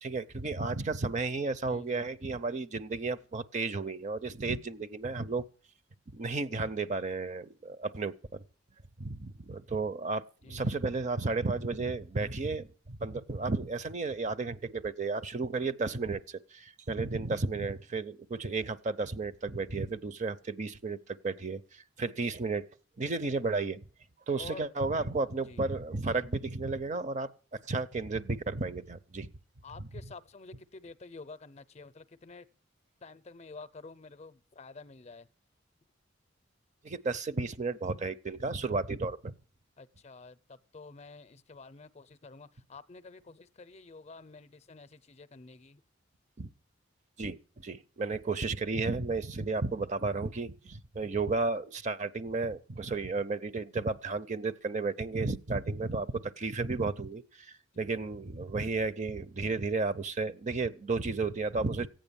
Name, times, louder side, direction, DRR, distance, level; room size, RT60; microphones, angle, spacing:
voice 1, 0.0-5.4 6.1-8.4 9.0-22.7 23.0-23.8 24.3-29.3 36.8-39.3 46.4-46.5 47.2-61.9, right 3 dB, 40° right, 0.6 m, -33 dB
voice 2, 1.7-2.1 10.4-10.8 24.4-25.0 25.5-25.6 29.6-32.5 33.0-35.3 39.8-45.8 57.7-57.9, left 3 dB, 35° left, 0.6 m, -49 dB
15.0 x 9.0 x 7.0 m
head